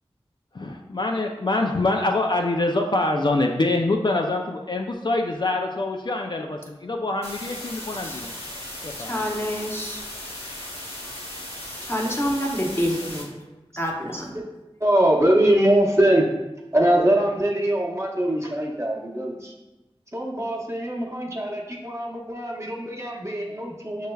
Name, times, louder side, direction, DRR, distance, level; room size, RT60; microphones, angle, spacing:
voice 1, 0.5-8.3 8.8-9.2, left 2 dB, 45° left, 2 dB, 0.4 m, -25 dB
sound 1, 7.2-13.2, left 1 dB, 80° left, 1.5 m, -37 dB
voice 2, 8.0-8.6 9.0-10.0 11.8-13.3 13.8-14.3, equal, 25° left, -1 dB, 0.8 m, -28 dB
voice 3, 14.8-16.3 16.7-19.5 20.1-24.1, right 1 dB, 25° right, -2 dB, 0.9 m, -22 dB
6.6 x 3.2 x 2.3 m, 1.1 s
wide cardioid pair, 50°, 10 cm